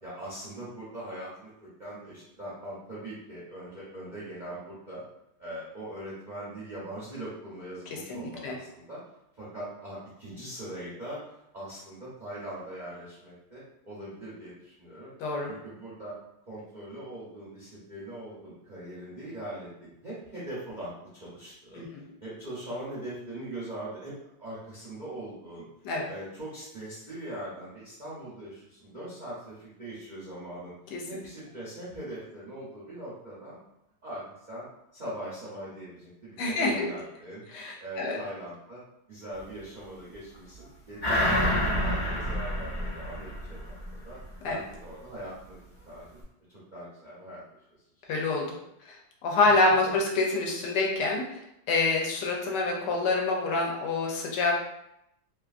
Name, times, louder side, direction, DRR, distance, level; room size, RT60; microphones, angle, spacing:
voice 1, 0.0-5.0 5.4-9.0 9.3-11.2 11.5-15.1 15.4-16.1 16.5-21.8 22.2-24.1 24.4-25.7 26.1-30.7 31.0-33.6 34.0-34.2 34.5-34.6 34.9-37.4 37.8-38.8 39.1-41.5 41.8-44.2 44.4-45.6 45.9-46.0 46.5-47.4 48.0-48.1 49.4-49.5, right 1 dB, 55° right, -9 dB, 0.5 m, -41 dB
voice 2, 7.9-8.6 15.2-15.5 21.7-22.0 25.8-26.1 30.9-31.0 36.4-36.9 37.5-38.2 44.4-44.6 48.1-48.5 48.9-49.0 49.2-51.4 51.7-54.6, left 3 dB, 75° left, 0 dB, 1.1 m, -27 dB
sound 1, 41.0-43.9 44.3-44.4, equal, 45° left, 0.6 m, -28 dB
3.0 x 2.3 x 2.4 m, 0.81 s
omnidirectional pair, 2.0 m